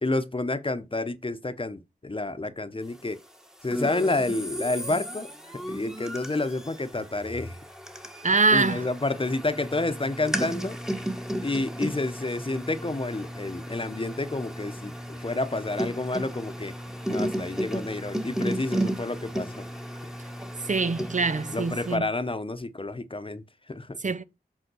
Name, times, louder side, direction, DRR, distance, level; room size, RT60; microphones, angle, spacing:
voice 1, 0.0-3.2 3.6-5.3 5.7-7.6 8.5-10.8 11.4-16.7 17.1-19.6 21.5-24.0, left 2 dB, 30° left, 0.9 m, -29 dB
sound 1, 3.7-22.0, equal, 5° right, 1.2 m, -34 dB
voice 2, 8.2-8.9 20.7-22.1 24.0-24.2, right 4 dB, 50° right, 0.6 m, -24 dB
8.0 x 3.6 x 6.1 m
wide cardioid pair, 70°, 17 cm